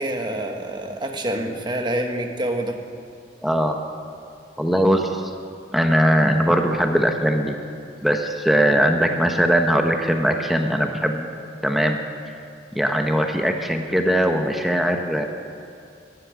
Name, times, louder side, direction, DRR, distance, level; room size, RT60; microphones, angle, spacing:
voice 1, 0.0-2.8, right 1 dB, 25° right, 3 dB, 1.4 m, -26 dB
voice 2, 3.4-3.7 4.6-5.3 5.7-7.6 8.0-11.3 11.6-12.0 12.7-15.3, equal, ahead, 3 dB, 0.9 m, -20 dB
12.5 x 11.5 x 9.5 m, 2.4 s
head